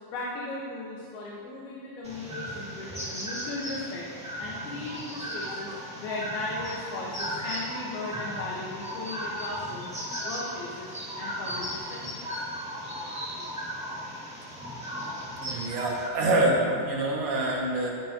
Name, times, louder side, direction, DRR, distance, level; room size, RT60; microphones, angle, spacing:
voice 1, 0.1-4.1 4.4-5.7 6.0-10.0 10.2-12.4, left 2 dB, 70° left, -4 dB, 3.1 m, -37 dB
sound 1, 2.0-16.1, equal, 5° right, 0.7 m, -36 dB
voice 2, 15.4-17.9, right 2 dB, 65° right, -3 dB, 3.8 m, -26 dB
17.0 x 13.5 x 3.0 m, 2.3 s
omnidirectional pair, 5.0 m